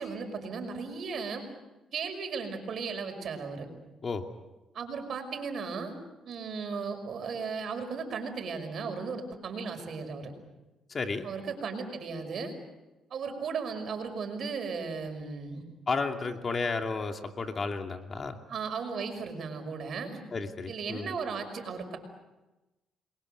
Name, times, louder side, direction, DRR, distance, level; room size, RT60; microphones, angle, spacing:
voice 1, 0.0-1.5 1.9-3.7 4.7-6.0 6.3-10.3 11.2-12.5 13.1-15.6 18.5-20.2 20.7-22.0, right 5 dB, 60° right, 7 dB, 5.6 m, -36 dB
voice 2, 10.9-11.3 15.9-18.4 20.3-21.1, left 4 dB, 40° left, 4 dB, 2.7 m, -32 dB
29.5 x 22.5 x 6.7 m, 1.0 s
cardioid pair, 90°, 0 cm